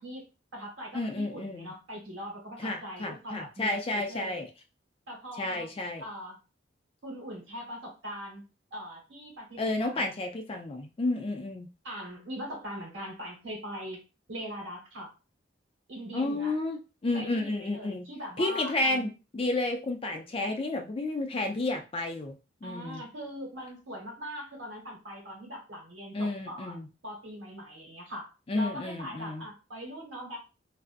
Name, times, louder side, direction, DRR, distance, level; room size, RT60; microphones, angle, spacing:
voice 1, 0.0-4.4 5.1-5.7 6.0-6.4 7.0-8.4 8.7-10.0 11.8-15.1 15.9-16.6 17.1-19.1 22.6-26.7 27.0-30.4, equal, 80° right, -1 dB, 1.1 m, -41 dB
voice 2, 0.9-1.7 2.6-4.5 5.4-6.0 9.6-11.7 16.1-18.0 18.4-23.0 26.1-26.9 28.5-29.5, left 2 dB, 30° left, 4 dB, 0.4 m, -31 dB
2.4 x 2.0 x 2.5 m, 0.30 s
head